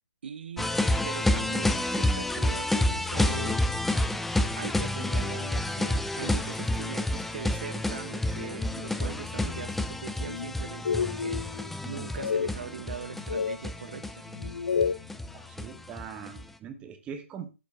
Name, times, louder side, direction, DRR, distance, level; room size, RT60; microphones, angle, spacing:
voice 1, 0.2-3.6 4.4-11.4 11.9-14.3, right 7 dB, 50° right, 0.8 m, -41 dB
sound 1, 0.6-16.4, left 1 dB, ahead, 0.4 m, -29 dB
sound 2, 10.2-10.5 10.8-11.7 12.2-12.5 13.0-13.6 14.3-15.1, left 6 dB, 60° left, 0.4 m, -29 dB
voice 2, 15.3-17.5, right 7 dB, 15° right, 1.2 m, -41 dB
12.0 x 7.3 x 3.5 m
figure-of-eight pair, 135°, 7 cm